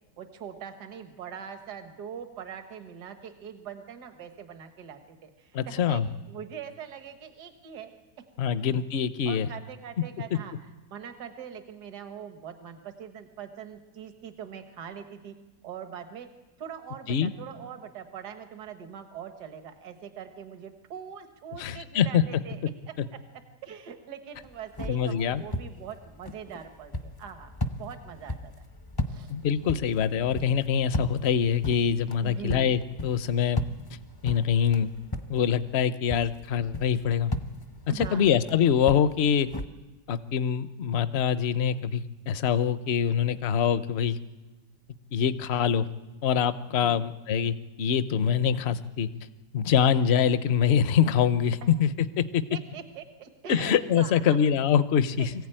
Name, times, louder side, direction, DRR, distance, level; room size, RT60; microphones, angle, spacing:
voice 1, 0.2-6.0 6.3-7.9 8.6-8.7 9.3-15.4 15.6-16.3 16.6-23.2 23.6-27.5 27.8-28.5 29.1-29.3 32.2-32.7 37.9-38.3 46.8-47.0 51.6-51.7 52.5-54.4 55.2-55.3, right 8 dB, 75° right, 7 dB, 1.9 m, -42 dB
voice 2, 5.5-6.1 8.4-9.5 10.3-10.4 17.1-17.3 21.6-22.2 24.9-25.4 29.3-33.6 34.2-34.9 35.3-37.3 37.9-39.5 40.1-44.2 45.1-45.9 46.2-49.1 49.5-52.4 53.5-55.3, left 8 dB, 50° left, 12 dB, 0.9 m, -24 dB
sound 1, 24.4-35.8 36.1-39.7, left 1 dB, 20° left, 0.6 m, -37 dB
24.0 x 15.5 x 8.9 m, 1.2 s
omnidirectional pair, 1.8 m